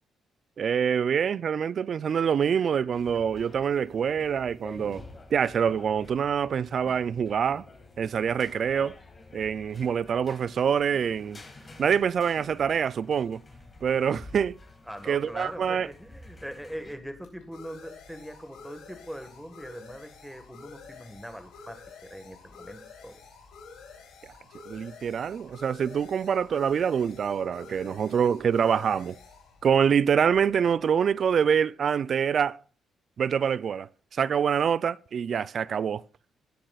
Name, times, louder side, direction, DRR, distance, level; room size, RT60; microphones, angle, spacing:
voice 1, 0.6-5.0 5.3-7.6 8.0-9.0 9.3-11.4 11.8-13.4 13.8-14.6 15.1-15.9 24.7-29.2 29.6-32.6 33.2-36.0, right 7 dB, 55° right, 0.3 m, -25 dB
sound 1, 2.9-17.0, left 2 dB, 30° left, 2.0 m, -49 dB
voice 2, 14.9-23.2, equal, ahead, 1.4 m, -41 dB
sound 2, 15.6-31.0, left 5 dB, 90° left, 3.2 m, -50 dB
16.0 x 7.4 x 2.3 m
cardioid pair, 90°, 0 cm